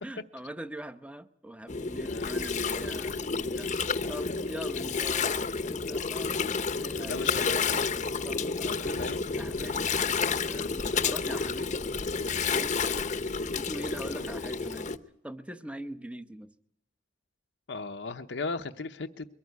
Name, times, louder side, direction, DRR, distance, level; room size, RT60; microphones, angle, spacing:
voice 1, 0.0-3.7 4.1-5.3 5.7-9.0 9.3-10.1 10.5-11.8 12.5-13.0 13.2-14.9 15.2-16.5, right 1 dB, 5° right, 11 dB, 0.8 m, -43 dB
Gurgling, 1.7-15.0, left 5 dB, 40° left, 0.8 m, -30 dB
voice 2, 2.0-2.3 7.0-7.8 8.6-9.2 10.8-11.1 17.7-19.3, left 3 dB, 70° left, 7 dB, 0.8 m, -37 dB
22.5 x 14.5 x 9.5 m, 0.76 s
head